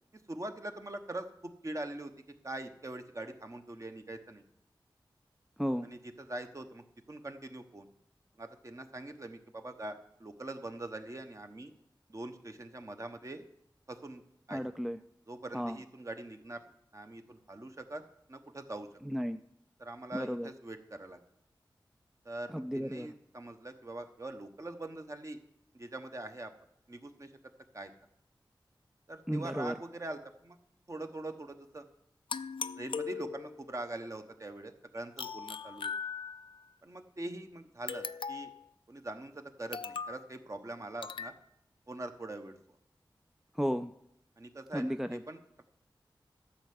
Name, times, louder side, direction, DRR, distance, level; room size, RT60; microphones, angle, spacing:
voice 1, 0.3-2.1 2.4-4.4 5.8-7.9 8.4-11.7 12.1-13.5 13.9-14.2 14.5-14.6 15.3-16.6 16.9-18.0 18.3-18.9 19.8-21.2 22.2-25.4 25.7-26.5 26.9-27.3 27.7-27.9 29.1-30.6 30.9-31.8 32.8-35.9 36.8-38.5 38.9-41.3 41.9-42.6 44.4-45.6, right 2 dB, 35° right, 6 dB, 1.1 m, -43 dB
voice 2, 14.5-15.0 15.5-15.8 19.0-19.4 20.1-20.5 22.5-23.1 29.3-29.8 43.5-43.9 44.7-45.2, equal, 5° right, 9 dB, 0.4 m, -33 dB
sound 1, 32.3-33.7 35.2-36.6 37.9-38.6 39.7-40.2 41.0-41.4, left 6 dB, 80° left, 0.4 m, -39 dB
13.0 x 5.6 x 7.8 m, 0.76 s
wide cardioid pair, 85°, 9 cm